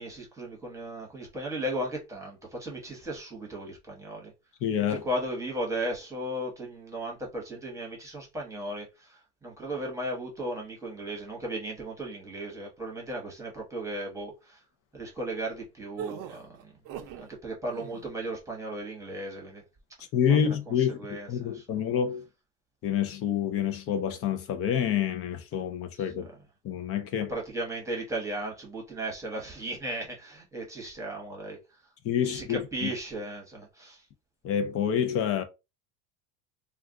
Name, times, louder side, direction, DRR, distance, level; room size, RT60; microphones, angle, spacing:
voice 1, 0.0-4.3 4.9-14.6 14.9-16.8 17.2-19.6 20.3-20.4 21.0-21.6 26.1-26.3 27.3-31.6 32.2-34.0, right 1 dB, 10° right, 1.1 m, -36 dB
voice 2, 4.6-5.0 20.1-22.3 22.8-26.3 26.6-27.3 32.0-32.9 34.4-35.4, left 8 dB, 35° left, 0.5 m, -28 dB
sound 1, 16.0-17.3 17.6-18.1, right 8 dB, 55° right, 0.5 m, -40 dB
2.4 x 2.3 x 3.6 m
cardioid pair, 135°, 38 cm